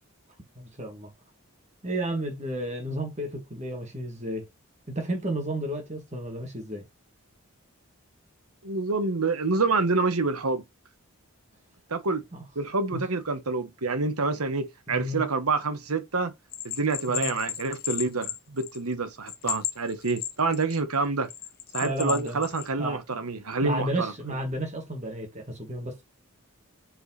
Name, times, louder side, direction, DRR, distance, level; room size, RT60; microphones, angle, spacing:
voice 1, 0.6-1.1 1.8-4.5 4.9-6.8 12.3-12.4 12.9-13.0 14.9-15.2 17.1-17.3 21.8-22.5 22.8-23.0 23.6-26.0, right 1 dB, 30° right, 1.9 m, -32 dB
voice 2, 8.6-10.6 11.9-12.2 12.5-16.3 16.6-21.3 21.7-24.1, right 3 dB, 85° right, 1.2 m, -27 dB
Bell, 16.5-18.9 19.3-20.8 21.3-22.7, left 11 dB, 40° left, 1.2 m, -34 dB
5.2 x 4.4 x 4.2 m
head